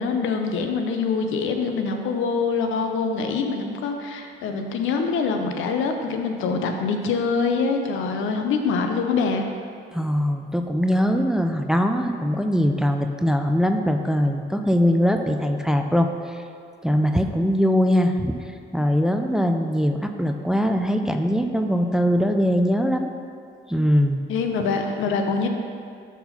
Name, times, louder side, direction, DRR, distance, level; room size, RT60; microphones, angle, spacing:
voice 1, 0.0-9.4 24.3-25.5, left 4 dB, 85° left, 5 dB, 0.7 m, -24 dB
voice 2, 9.9-16.4 16.8-18.4 18.7-23.1 23.7-24.2, equal, 5° right, 5 dB, 0.4 m, -21 dB
6.0 x 4.3 x 5.5 m, 2.3 s
cardioid pair, 90°, 20 cm